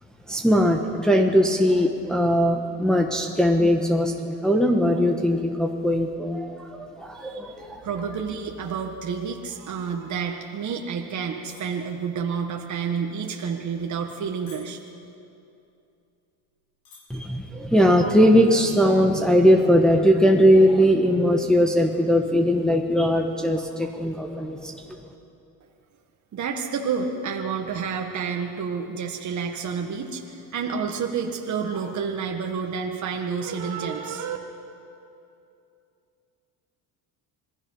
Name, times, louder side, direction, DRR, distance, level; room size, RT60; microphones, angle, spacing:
voice 1, 0.3-7.8 17.1-25.0, equal, ahead, 1 dB, 1.3 m, -20 dB
voice 2, 7.1-7.5 7.8-14.8 26.3-34.4, right 6 dB, 45° right, 2 dB, 1.6 m, -29 dB
sound 1, 11.5-11.8 12.1-12.4 13.1-13.3 13.9-14.2 14.5-14.9 15.7-15.8 16.0-16.1 16.7-17.0 17.3-17.6, left 4 dB, 65° left, 6.7 m, -49 dB
27.0 x 19.5 x 5.6 m, 2.7 s
cardioid pair, 115°, 40 cm